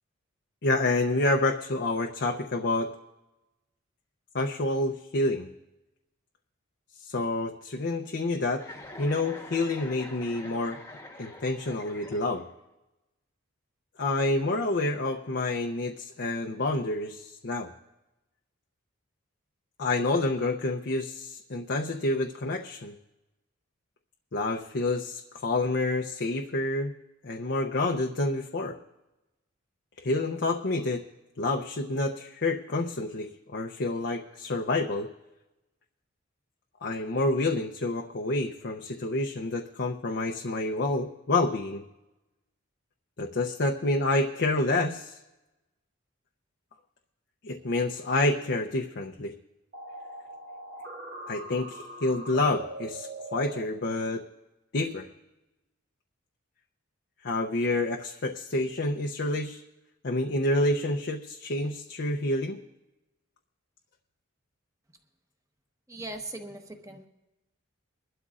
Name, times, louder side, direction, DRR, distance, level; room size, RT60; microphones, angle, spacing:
voice 1, 0.6-2.9 4.3-5.5 7.0-8.6 9.0-10.8 11.2-12.4 14.0-17.7 19.8-22.9 24.3-26.9 27.2-28.7 30.0-31.0 31.4-35.1 36.8-41.8 43.2-45.2 47.4-49.3 51.3-54.2 54.7-55.1 57.2-59.6 60.0-62.6, left 2 dB, 55° left, 2 dB, 0.7 m, -28 dB
Chuckle chortle, 8.5-12.6, left 1 dB, 15° left, 1.2 m, -45 dB
sound 1, 49.7-53.6, right 1 dB, 50° right, 2.0 m, -41 dB
voice 2, 65.9-67.1, right 2 dB, 15° right, 4 dB, 1.1 m, -39 dB
23.5 x 12.0 x 2.5 m, 1.0 s
head